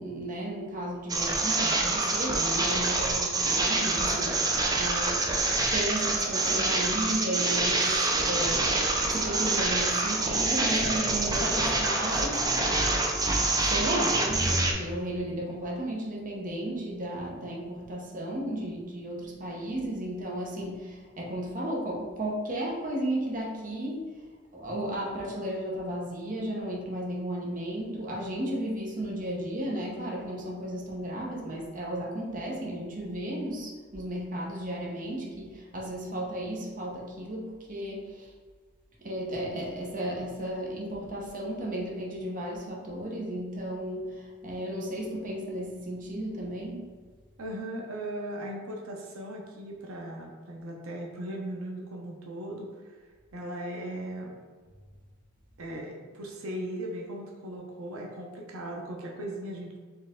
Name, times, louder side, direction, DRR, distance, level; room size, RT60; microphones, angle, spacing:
voice 1, 0.0-8.8 9.1-12.4 13.2-24.2 24.5-38.3 39.0-46.9, right 1 dB, 40° right, -2 dB, 0.9 m, -34 dB
sound 1, 1.1-14.7, right 2 dB, 20° right, 0.5 m, -26 dB
voice 2, 47.4-53.0 53.3-54.4 55.6-59.8, right 1 dB, 90° right, 0 dB, 0.7 m, -38 dB
4.4 x 3.2 x 3.7 m, 1.5 s
head